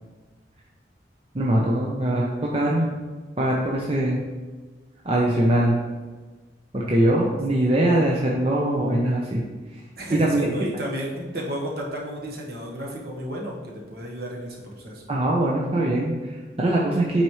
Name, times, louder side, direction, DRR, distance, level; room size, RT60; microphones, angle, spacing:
voice 1, 1.3-2.9 3.4-4.2 5.0-5.8 6.7-9.4 10.1-10.7 15.1-17.2, right 1 dB, 30° right, -3 dB, 0.7 m, -22 dB
voice 2, 10.0-15.0, equal, 55° right, -2 dB, 1.2 m, -33 dB
8.7 x 4.2 x 3.1 m, 1.3 s
head